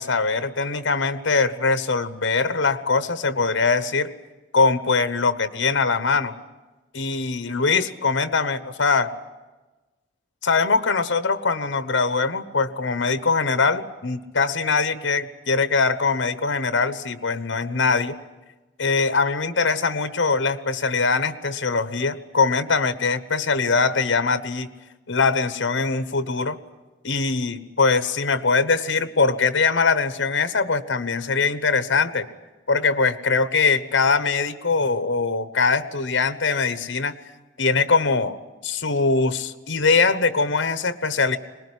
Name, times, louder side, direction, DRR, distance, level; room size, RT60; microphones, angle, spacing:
voice 1, 0.0-4.1 4.5-6.4 6.9-9.1 10.4-18.2 18.8-24.7 25.1-26.6 27.0-32.3 32.7-37.1 37.6-38.4 38.6-41.4, left 4 dB, 75° left, 13 dB, 1.1 m, -22 dB
22.5 x 20.0 x 10.0 m, 1.2 s
head